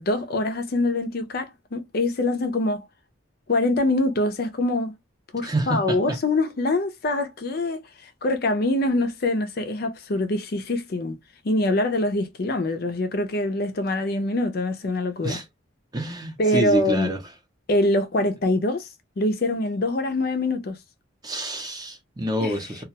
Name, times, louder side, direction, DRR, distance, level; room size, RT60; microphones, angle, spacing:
voice 1, 0.0-2.9 3.5-4.9 5.3-11.2 11.4-15.4 16.4-17.1 17.7-18.9 19.2-20.8 22.4-22.6, left 2 dB, 50° left, 0.5 m, -24 dB
voice 2, 5.4-6.2 15.2-15.4 15.9-17.2 21.2-22.8, right 1 dB, 20° right, 0.6 m, -27 dB
2.3 x 2.2 x 2.7 m
head